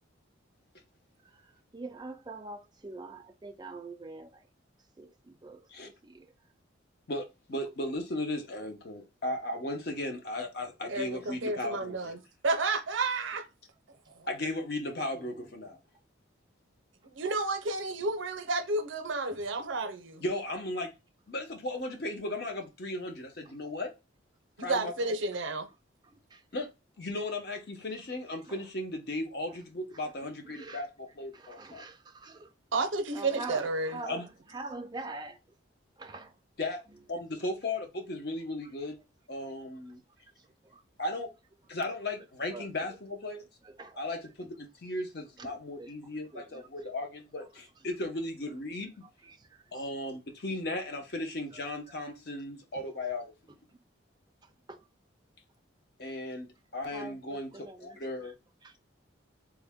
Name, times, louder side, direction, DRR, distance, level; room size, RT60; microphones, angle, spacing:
voice 1, 1.2-4.5 5.0-6.3 15.0-15.4 19.6-19.7 26.0-26.4 28.5-28.6 30.2-30.8 31.3-32.5 33.1-35.4 36.0-36.4 39.4-39.5 40.4-40.8 42.4-42.7 43.6-44.0 44.4-44.5 45.4-47.1 49.2-49.8 51.5-51.6 51.9-52.0 53.7-53.8 54.4-54.9 56.9-58.3 58.6-58.8, right 3 dB, 20° right, 0.4 m, -45 dB
voice 2, 7.1-12.1 12.5-12.8 14.3-15.8 20.2-20.9 21.3-23.9 24.6-24.9 26.5-26.7 27.0-31.8 34.0-34.3 36.6-36.8 37.1-39.0 39.3-40.0 41.0-41.3 41.7-43.4 44.0-48.9 49.7-53.3 56.0-58.3, left 1 dB, 55° left, 0.8 m, -36 dB
voice 3, 10.9-12.2 12.4-13.4 17.2-20.2 24.6-25.7 32.7-34.0, right 3 dB, 80° right, 0.6 m, -31 dB
3.5 x 2.1 x 3.5 m
head